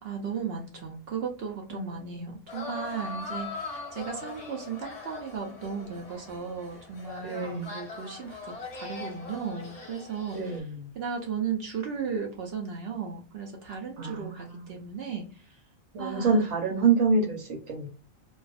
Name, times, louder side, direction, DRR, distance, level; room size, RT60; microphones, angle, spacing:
voice 1, 0.0-10.7 10.9-15.6 16.0-16.4, right 6 dB, 60° right, 1 dB, 0.7 m, -36 dB
voice 2, 1.7-2.3 7.2-7.7 10.3-10.9 14.0-14.6 15.9-17.9, right 4 dB, 85° right, -2 dB, 1.2 m, -27 dB
sound 1, 2.5-10.6, left 3 dB, 35° left, 0.8 m, -41 dB
2.4 x 2.2 x 2.3 m, 0.36 s
omnidirectional pair, 1.4 m